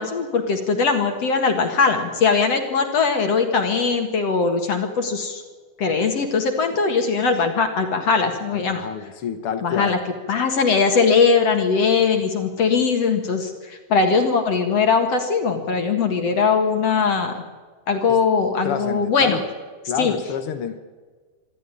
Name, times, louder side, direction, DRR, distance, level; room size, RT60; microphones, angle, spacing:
voice 1, 0.0-5.4 5.8-8.9 9.6-10.0 10.3-17.4 17.9-19.4 20.0-20.1, left 5 dB, 50° left, 5 dB, 2.4 m, -20 dB
voice 2, 8.5-10.0 18.1-18.2 18.6-19.4 19.9-20.8, left 7 dB, 80° left, 10 dB, 1.2 m, -28 dB
25.5 x 13.5 x 9.9 m, 1.4 s
omnidirectional pair, 4.3 m